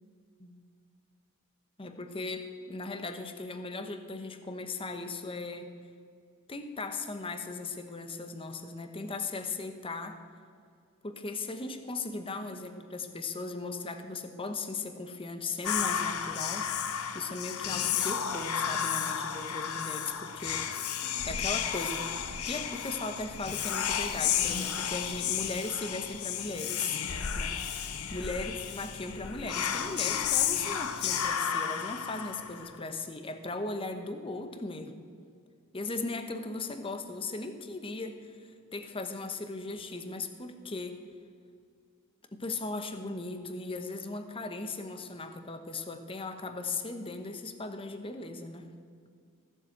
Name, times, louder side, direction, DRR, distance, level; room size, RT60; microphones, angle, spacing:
voice 1, 1.8-5.7 6.5-10.2 11.0-16.7 17.1-20.9 21.3-22.0 22.4-27.0 27.3-27.8 28.1-34.9 35.7-41.0 42.3-48.7, left 3 dB, 25° left, 7 dB, 0.9 m, -38 dB
Whispering, 15.6-32.8, left 8 dB, 75° left, 0.9 m, -32 dB
15.5 x 7.4 x 7.9 m, 2.2 s
head